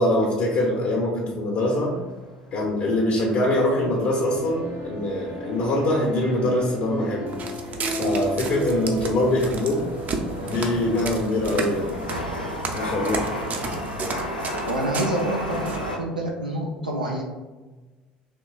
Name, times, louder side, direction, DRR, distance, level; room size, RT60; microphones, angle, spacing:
voice 1, 0.0-2.0 2.5-7.3 8.0-9.8 10.4-12.1 12.7-13.3, left 1 dB, 50° left, -2 dB, 0.7 m, -23 dB
Chatter / Subway metro underground, 1.7-16.0, left 1 dB, 85° left, 0.4 m, -35 dB
sound 1, 4.1-12.1, right 1 dB, 65° right, 1.2 m, -34 dB
Walk footsteps, 7.3-15.9, right 3 dB, 35° right, 0.5 m, -33 dB
voice 2, 14.6-17.2, right 1 dB, 90° right, -3 dB, 0.4 m, -27 dB
4.5 x 3.0 x 2.4 m, 1.2 s
figure-of-eight pair, 60°, 4 cm